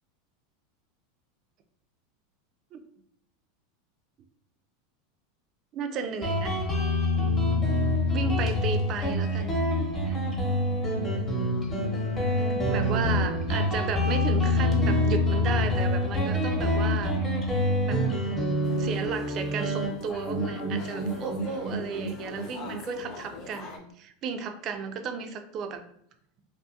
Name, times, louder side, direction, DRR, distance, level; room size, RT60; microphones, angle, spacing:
voice 1, 5.7-6.6 8.1-9.6 10.1-10.2 12.7-17.1 17.8-18.0 18.8-25.8, right 6 dB, 40° right, 6 dB, 0.3 m, -34 dB
Guitar, 6.2-23.4, left 1 dB, 20° left, 0.8 m, -26 dB
sound 1, 18.6-23.8, left 4 dB, 45° left, 0.4 m, -43 dB
2.5 x 2.3 x 2.7 m, 0.69 s
supercardioid pair, 130°, 0 cm